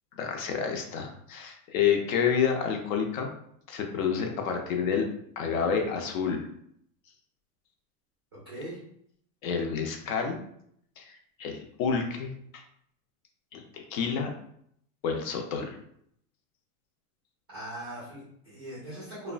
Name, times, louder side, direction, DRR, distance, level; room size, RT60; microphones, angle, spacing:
voice 1, 0.2-3.3 3.7-5.1 5.4-6.4 9.4-10.4 11.0-12.6 13.5-14.3 15.0-15.8, left 6 dB, 60° left, 4 dB, 0.5 m, -29 dB
voice 2, 8.3-8.8 17.5-19.3, right 1 dB, 20° right, -8 dB, 0.3 m, -40 dB
2.9 x 2.1 x 2.4 m, 0.70 s
supercardioid pair, 175°, 47 cm